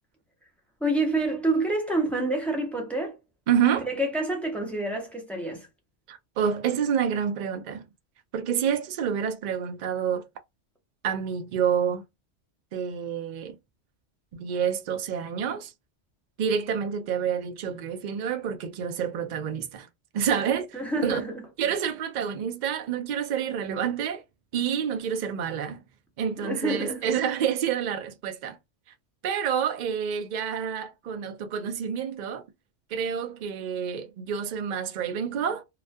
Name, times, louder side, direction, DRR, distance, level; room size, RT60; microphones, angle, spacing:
voice 1, 0.8-3.2 3.9-5.7 20.7-21.4 26.4-27.0, right 2 dB, ahead, 0.5 m, -27 dB
voice 2, 3.5-3.9 6.1-7.8 8.3-10.3 11.0-12.0 12.7-13.6 14.3-15.7 16.4-19.9 20.1-21.2 21.6-24.2 24.5-25.8 26.2-28.6 29.2-32.4 32.9-35.6, right 8 dB, 60° right, 0.5 m, -28 dB
2.3 x 2.2 x 2.4 m
omnidirectional pair, 1.2 m